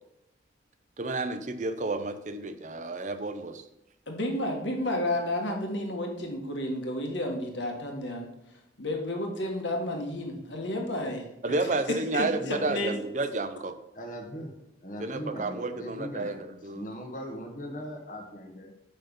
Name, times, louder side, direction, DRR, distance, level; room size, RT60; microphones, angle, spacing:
voice 1, 1.0-3.6 11.4-13.7 15.0-16.9, right 2 dB, 40° right, 10 dB, 0.6 m, -31 dB
voice 2, 4.1-8.3 8.8-11.3 12.1-13.0, left 1 dB, 80° left, 2 dB, 1.6 m, -31 dB
voice 3, 13.9-14.5 14.8-16.4 16.7-18.7, equal, 45° left, 2 dB, 1.2 m, -39 dB
6.9 x 5.6 x 5.3 m, 0.85 s
head